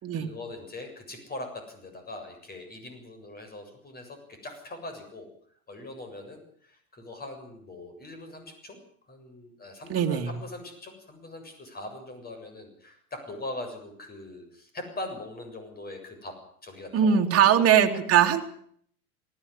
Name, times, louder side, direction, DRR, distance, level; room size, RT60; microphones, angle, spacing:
voice 1, 0.1-5.3 5.7-8.8 9.1-16.3 16.6-17.6 17.9-18.0, left 2 dB, 20° left, 6 dB, 7.3 m, -41 dB
voice 2, 9.9-10.3 16.9-18.4, right 8 dB, 30° right, 3 dB, 3.1 m, -21 dB
19.0 x 16.5 x 9.9 m, 0.62 s
hypercardioid pair, 100°, 43 cm